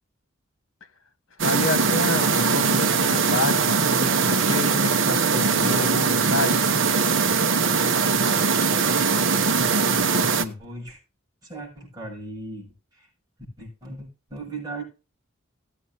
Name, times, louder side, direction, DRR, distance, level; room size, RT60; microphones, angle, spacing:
voice 1, 1.4-6.6, left 2 dB, 80° left, 1.4 m, -29 dB
sound 1, 1.4-10.4, right 5 dB, 70° right, 1.0 m, -21 dB
voice 2, 9.5-11.0 11.4-13.1 13.6-14.8, right 1 dB, 20° right, 7.3 m, -37 dB
18.5 x 8.5 x 2.8 m
head